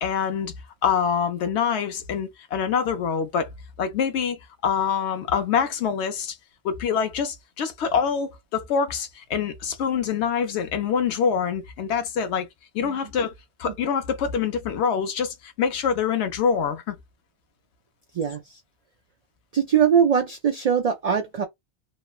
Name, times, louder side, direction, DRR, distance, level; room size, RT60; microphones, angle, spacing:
voice 1, 0.0-0.5 0.8-3.5 3.8-6.4 6.6-12.5 12.7-13.3 13.6-16.9, left 7 dB, 80° left, 0.9 m, -25 dB
voice 2, 18.1-18.6 19.5-21.4, right 7 dB, 60° right, 0.4 m, -22 dB
3.1 x 2.0 x 2.3 m
omnidirectional pair, 1.1 m